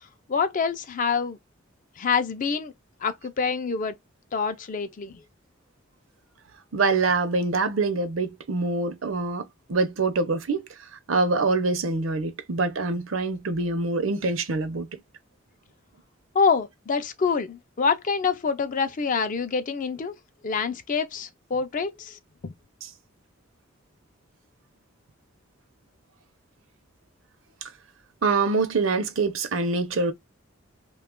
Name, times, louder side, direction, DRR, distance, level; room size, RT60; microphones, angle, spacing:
voice 1, 0.3-1.4 2.0-2.7 3.0-3.9 4.3-5.2 16.3-20.2 20.4-22.5, left 5 dB, 40° left, 0.4 m, -26 dB
voice 2, 6.7-10.6 11.1-14.9 28.2-30.1, right 3 dB, 75° right, 0.7 m, -25 dB
2.8 x 2.3 x 3.6 m
head